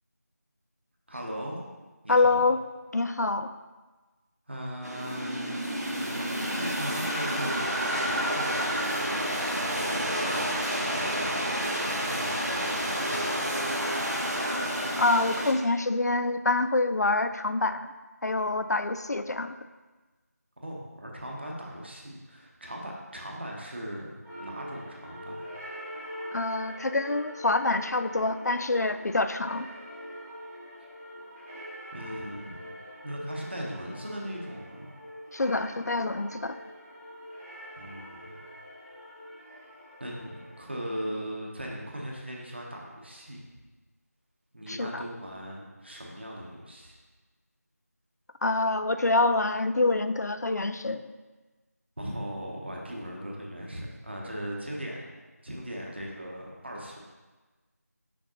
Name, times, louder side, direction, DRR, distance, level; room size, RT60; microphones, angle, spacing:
voice 1, 1.1-1.6 2.0-2.5 4.5-14.3 20.6-24.1 24.4-25.5 31.9-32.6 33.0-34.9 37.8-38.3 40.0-43.4 44.5-47.0 52.0-55.1 55.4-57.0, equal, 40° right, -2 dB, 0.8 m, -39 dB
voice 2, 2.1-2.6 2.9-3.5 15.0-17.8 18.2-19.5 26.3-29.7 35.3-36.6 44.7-45.0 48.4-51.0, left 2 dB, 75° left, 10 dB, 0.4 m, -26 dB
sound 1, 4.8-15.5, equal, 90° right, 1.2 m, -29 dB
sound 2, 24.2-41.0, equal, 5° right, 0.5 m, -44 dB
6.4 x 5.2 x 2.9 m, 1.2 s
figure-of-eight pair, 175°, 9 cm